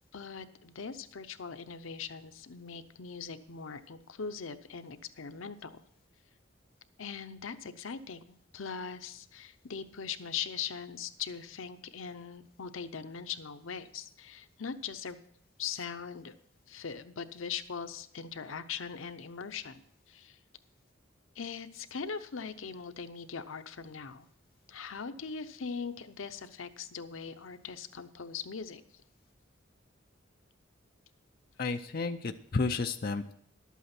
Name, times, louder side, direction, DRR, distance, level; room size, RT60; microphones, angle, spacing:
voice 1, 0.1-5.8 7.0-15.2 15.6-16.3 16.7-20.4 21.3-24.3 24.7-28.8, left 6 dB, 80° left, 10 dB, 0.7 m, -41 dB
voice 2, 31.6-33.3, left 4 dB, 45° left, 6 dB, 0.5 m, -32 dB
12.0 x 8.3 x 5.9 m, 0.67 s
head